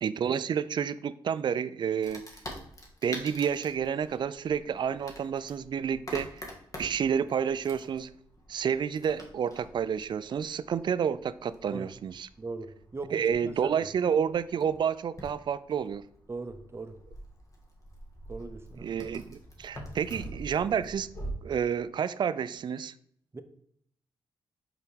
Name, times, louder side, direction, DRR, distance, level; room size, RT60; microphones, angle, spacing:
voice 1, 0.0-2.3 3.0-6.4 6.8-8.1 8.5-12.3 13.1-16.0 18.8-21.2 21.4-22.9, right 7 dB, 50° right, 0.3 m, -30 dB
Wood, 2.0-21.3, equal, 35° left, 1.7 m, -46 dB
voice 2, 12.4-13.8 16.3-17.0 18.3-18.9 23.3-23.4, right 3 dB, 25° right, 0.7 m, -39 dB
5.2 x 4.8 x 4.6 m
cardioid pair, 60°, 10 cm